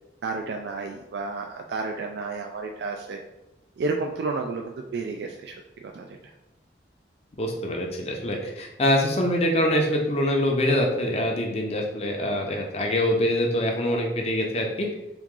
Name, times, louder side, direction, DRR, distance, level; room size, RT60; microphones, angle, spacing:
voice 1, 0.2-3.2 3.8-6.2, right 3 dB, 70° right, 3 dB, 0.3 m, -31 dB
voice 2, 7.4-14.9, left 1 dB, 35° left, 1 dB, 0.6 m, -24 dB
3.6 x 3.0 x 3.7 m, 0.96 s
head